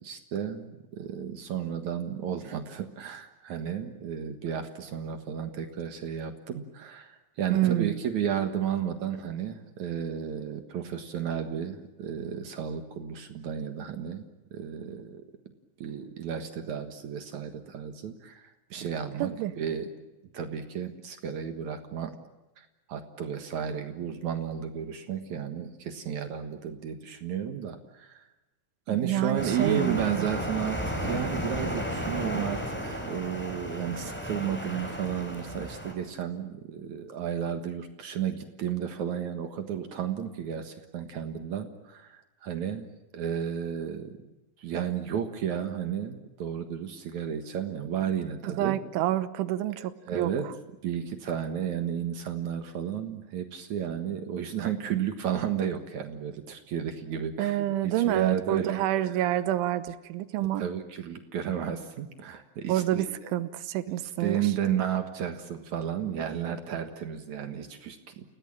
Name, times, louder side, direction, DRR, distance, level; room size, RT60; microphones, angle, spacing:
voice 1, 0.0-15.2 15.8-19.3 19.6-19.9 20.3-22.1 22.6-28.2 28.9-42.9 43.1-44.3 44.6-48.8 50.1-50.4 50.8-57.6 57.8-58.8 59.2-59.3 60.4-63.3 64.2-68.2, right 8 dB, 60° right, 7 dB, 2.0 m, -33 dB
voice 2, 7.5-8.0 19.2-19.5 28.9-30.3 48.4-50.3 57.4-60.7 62.7-64.5, right 13 dB, 85° right, 13 dB, 3.5 m, -28 dB
sound 1, 29.4-35.9, equal, ahead, 3.9 m, -34 dB
30.0 x 18.0 x 8.9 m, 1.1 s
omnidirectional pair, 5.4 m